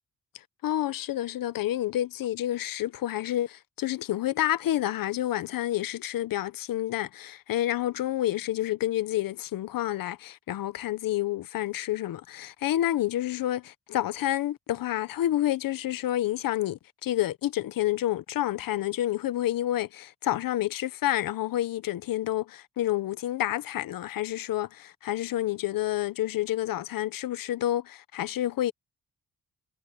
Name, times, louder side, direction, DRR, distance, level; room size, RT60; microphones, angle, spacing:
voice 1, 0.6-28.7, left 13 dB, 90° left, 0.9 m, -29 dB
wide cardioid pair, 155°, 33 cm